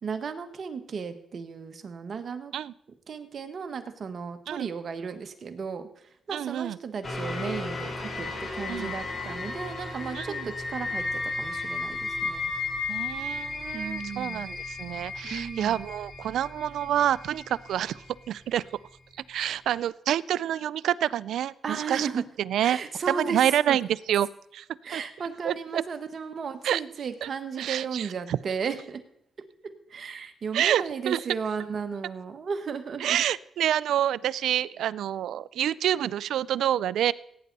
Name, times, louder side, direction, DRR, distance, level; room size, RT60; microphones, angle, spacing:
voice 1, 0.0-2.5 3.1-5.9 6.3-8.3 8.5-12.5 13.7-14.4 15.2-15.8 21.6-22.2 22.6-23.8 24.8-29.0 29.9-33.2, right 6 dB, 60° right, 8 dB, 1.5 m, -34 dB
voice 2, 6.3-6.8 8.7-8.9 10.1-10.5 12.9-18.6 19.3-22.1 22.4-22.8 23.1-24.3 24.5-24.6 24.9-25.0 25.4-25.8 26.6-26.8 27.2-27.3 27.6-28.4 30.5-31.2 33.0-37.1, right 11 dB, 80° right, 21 dB, 0.3 m, -27 dB
sound 1, 7.0-18.1 18.7-18.8, left 3 dB, 35° left, 3.2 m, -34 dB
17.0 x 9.6 x 4.1 m, 0.73 s
cardioid pair, 60°, 0 cm